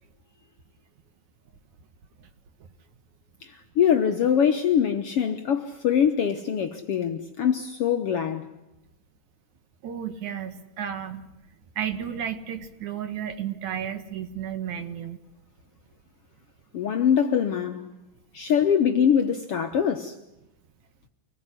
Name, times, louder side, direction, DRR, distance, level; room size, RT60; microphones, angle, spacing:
voice 1, 3.4-8.4 16.7-17.9 18.3-20.1, left 8 dB, 60° left, 1.6 m, -23 dB
voice 2, 9.8-11.3 11.8-15.2, right 9 dB, 65° right, 2.8 m, -32 dB
26.0 x 20.0 x 9.9 m
omnidirectional pair, 3.8 m